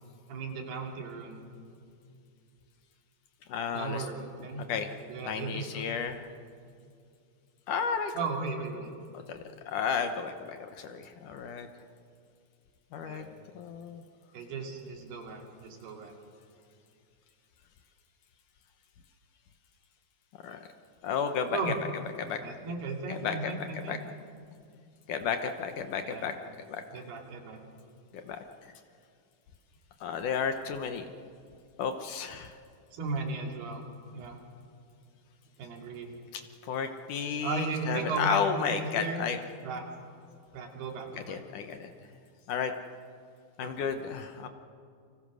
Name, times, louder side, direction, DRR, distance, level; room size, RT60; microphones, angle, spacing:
voice 1, 0.3-1.4 3.7-4.6 5.0-5.9 8.1-8.9 13.0-13.3 14.3-16.1 21.5-21.7 22.4-24.0 26.0-26.3 26.9-27.6 32.9-33.8 34.1-34.4 35.6-36.2 37.4-39.2 39.6-39.8 40.5-41.4 43.6-43.9, right 4 dB, 90° right, 2 dB, 4.7 m, -36 dB
voice 2, 3.5-4.1 4.7-4.9 5.3-6.2 7.7-8.1 9.3-11.7 12.9-13.2 13.5-14.0 20.4-20.6 21.0-21.7 22.2-22.4 23.1-24.0 25.1-26.3 26.7-27.0 28.1-28.7 30.0-31.1 31.8-32.5 36.3-39.4 41.3-41.9 42.5-42.7 43.6-44.5, left 6 dB, 65° left, 7 dB, 2.2 m, -33 dB
29.5 x 25.0 x 6.3 m, 2.4 s
omnidirectional pair, 4.5 m